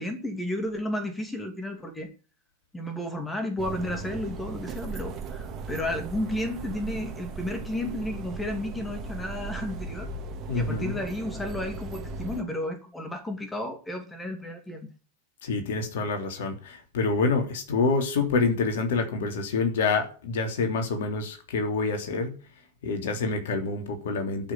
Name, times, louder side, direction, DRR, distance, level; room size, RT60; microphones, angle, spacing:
voice 1, 0.0-2.1 2.7-10.1 10.5-14.9, left 1 dB, 10° left, 2.7 m, -32 dB
sound 1, 3.6-12.4, right 4 dB, 30° right, 2.5 m, -37 dB
voice 2, 10.5-11.0 15.4-22.4 22.8-24.5, left 4 dB, 55° left, 3.4 m, -27 dB
12.5 x 6.3 x 9.7 m
figure-of-eight pair, 90°, 0 cm